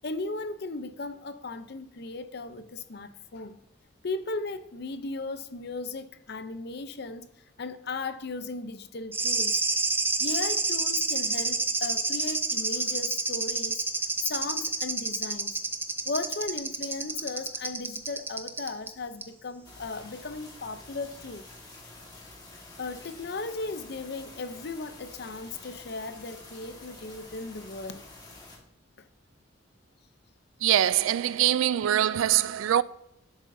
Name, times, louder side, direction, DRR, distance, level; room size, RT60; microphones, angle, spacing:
voice 1, 0.0-3.6 4.0-7.3 7.6-9.6 10.2-13.8 14.2-15.6 16.1-21.5 22.5-28.1, left 3 dB, 50° left, 0.6 m, -36 dB
sound 1, 9.1-18.9 19.2-19.3, right 3 dB, 10° right, 0.4 m, -29 dB
sound 2, 19.6-28.6, left 2 dB, 20° left, 1.6 m, -48 dB
voice 2, 30.6-32.8, right 11 dB, 75° right, 0.3 m, -23 dB
10.5 x 7.5 x 2.7 m
head